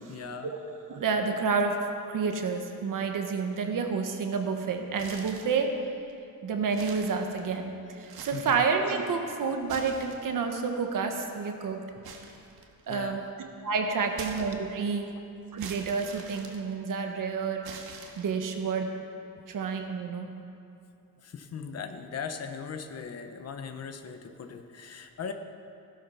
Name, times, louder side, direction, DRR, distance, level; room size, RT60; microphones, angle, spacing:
voice 1, 0.0-0.5 8.3-8.6 12.9-13.2 21.2-25.3, left 6 dB, 45° left, 6 dB, 1.0 m, -39 dB
voice 2, 0.9-5.8 6.4-11.8 12.9-13.2 13.6-15.1 15.5-17.6 18.2-18.9 19.5-20.3, right 5 dB, 60° right, 4 dB, 1.4 m, -29 dB
sound 1, 4.9-5.6 6.1-6.2 6.6-7.7 8.0-8.7 9.5-10.6 12.0-13.1 14.1-14.9 15.6-17.1 17.6-18.5, right 5 dB, 85° right, 1.9 m, -44 dB
16.5 x 12.5 x 5.6 m, 2.6 s
wide cardioid pair, 170°, 36 cm